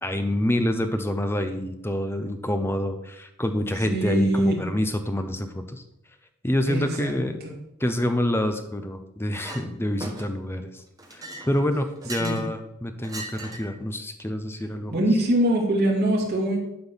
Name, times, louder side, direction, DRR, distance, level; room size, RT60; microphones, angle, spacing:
voice 1, 0.0-5.8 6.4-7.4 7.8-10.8 11.1-15.0, left 1 dB, 10° left, 7 dB, 0.8 m, -27 dB
voice 2, 3.9-4.5 6.7-7.1 7.4-7.5 12.2-12.4 14.9-16.6, right 1 dB, 45° right, -2 dB, 2.6 m, -23 dB
Chink clink, 9.3-9.6 10.0-10.5 11.0-12.5 13.0-13.8, right 1 dB, 15° right, 1.5 m, -38 dB
11.5 x 4.0 x 7.1 m, 0.85 s
head